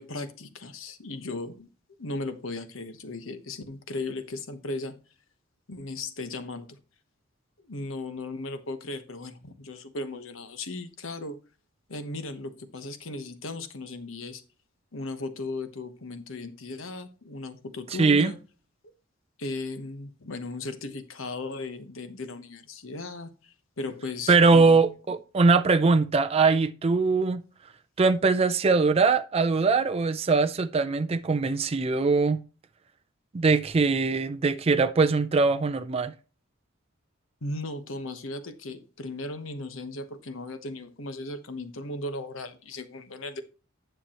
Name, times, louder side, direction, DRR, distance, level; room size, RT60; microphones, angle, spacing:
voice 1, 0.0-1.7 2.0-5.0 5.7-6.8 7.6-11.4 11.9-14.4 14.9-18.4 19.4-24.9 37.4-43.4, left 2 dB, 90° left, 1.1 m, -36 dB
voice 2, 18.0-18.3 24.3-27.4 28.0-32.4 33.3-36.1, right 4 dB, 30° right, 0.4 m, -22 dB
10.0 x 6.9 x 3.0 m
head